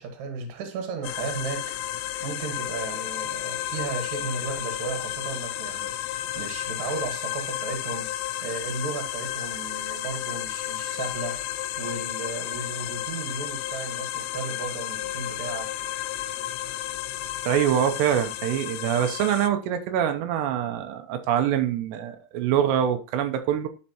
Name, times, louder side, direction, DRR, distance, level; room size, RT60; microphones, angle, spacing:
voice 1, 0.0-8.1 8.4-15.7, right 4 dB, 55° right, 2.3 m, -35 dB
sound 1, 1.0-19.5, left 13 dB, 85° left, 2.7 m, -32 dB
voice 2, 17.5-23.7, right 10 dB, 85° right, 2.9 m, -24 dB
11.5 x 4.5 x 2.9 m
omnidirectional pair, 4.8 m